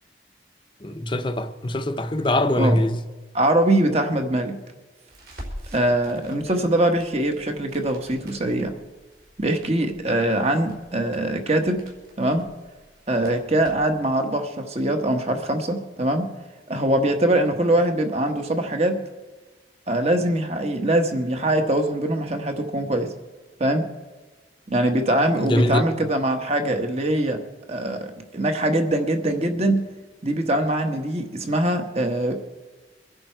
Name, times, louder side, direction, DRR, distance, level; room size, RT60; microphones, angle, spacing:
voice 1, 0.8-3.0 25.4-25.8, left 1 dB, 25° left, 0.7 m, -22 dB
voice 2, 3.3-4.6 5.7-8.7 9.4-11.8 12.2-12.4 13.1-16.3 16.7-19.0 19.9-23.1 23.6-23.9 24.7-27.4 27.7-29.8 30.2-32.4, right 1 dB, 35° right, 1.3 m, -22 dB
Crackle, 5.1-14.0, equal, 60° right, 4.2 m, -46 dB
23.5 x 10.5 x 4.5 m
head